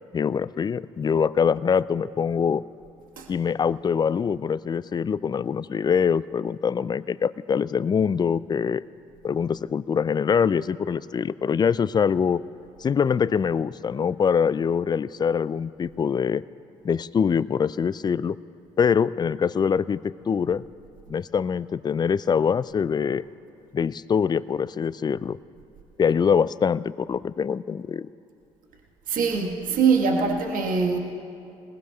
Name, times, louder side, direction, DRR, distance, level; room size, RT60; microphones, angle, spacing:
voice 1, 0.1-2.6 3.3-8.8 9.2-12.4 12.8-16.4 16.8-18.4 18.8-20.6 21.1-23.2 23.7-25.4 26.0-28.1, left 6 dB, 25° left, 19 dB, 0.3 m, -24 dB
voice 2, 29.1-31.0, right 5 dB, 55° right, 1 dB, 1.5 m, -23 dB
20.5 x 20.0 x 2.3 m, 2.6 s
hypercardioid pair, 55°, 17 cm